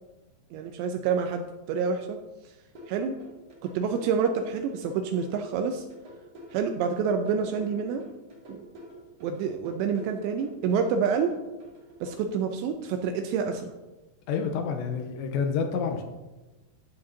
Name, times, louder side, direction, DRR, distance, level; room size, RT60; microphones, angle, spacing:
voice 1, 0.5-2.2 2.9-3.2 3.6-5.8 6.5-8.0 8.5-8.7 9.2-11.4 12.0-13.7, right 6 dB, 85° right, 6 dB, 2.6 m, -28 dB
sound 1, 2.8-12.1, equal, 40° right, 2.7 m, -47 dB
voice 2, 14.3-16.0, left 6 dB, 85° left, 4 dB, 2.8 m, -28 dB
12.5 x 8.4 x 2.7 m, 1.1 s
omnidirectional pair, 5.5 m